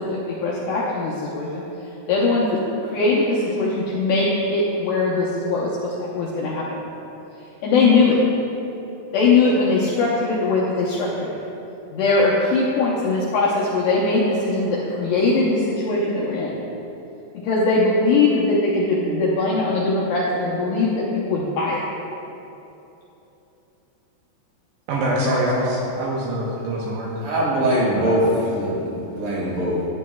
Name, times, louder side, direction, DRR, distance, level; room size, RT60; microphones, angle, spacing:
voice 1, 0.0-6.8 7.6-8.2 9.1-11.4 11.9-16.5 17.4-21.8 25.2-25.4 28.0-28.8, left 3 dB, 85° left, -6 dB, 2.4 m, -21 dB
voice 2, 24.9-27.3, right 1 dB, 80° right, -4 dB, 2.7 m, -24 dB
voice 3, 27.2-28.2 28.5-29.9, right 1 dB, 55° right, -6 dB, 2.9 m, -22 dB
12.0 x 8.4 x 2.3 m, 3.0 s
omnidirectional pair, 5.8 m